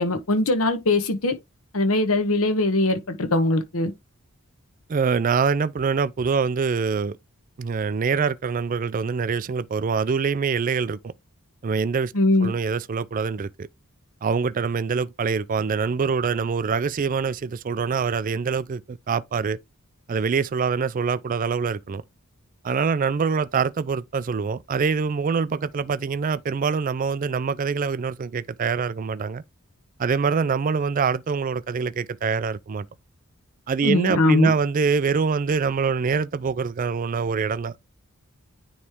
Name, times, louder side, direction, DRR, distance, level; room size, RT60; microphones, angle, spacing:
voice 1, 0.0-1.3 1.7-3.9 12.1-12.5 33.8-34.5, left 2 dB, 75° left, 1.1 m, -21 dB
voice 2, 4.9-7.2 7.6-11.1 11.6-12.1 12.4-13.7 14.2-19.6 20.1-22.0 22.6-29.4 30.0-32.9 33.7-37.8, right 5 dB, 40° right, 0.4 m, -24 dB
9.6 x 3.2 x 3.6 m
head